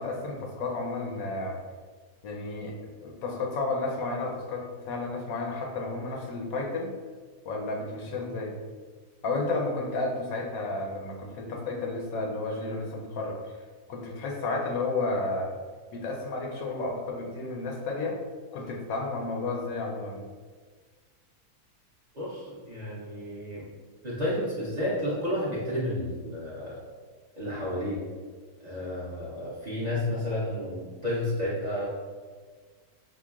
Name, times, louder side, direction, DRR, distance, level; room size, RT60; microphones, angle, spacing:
voice 1, 0.0-1.6 2.2-6.9 7.5-8.5 9.2-13.4 13.9-15.5 15.9-18.2 18.5-20.3, left 3 dB, 75° left, 0 dB, 1.0 m, -32 dB
voice 2, 22.1-23.7 24.0-26.8 27.4-28.0 28.6-31.8, left 1 dB, 35° right, -8 dB, 0.7 m, -31 dB
6.0 x 2.0 x 2.3 m, 1.5 s
omnidirectional pair, 1.6 m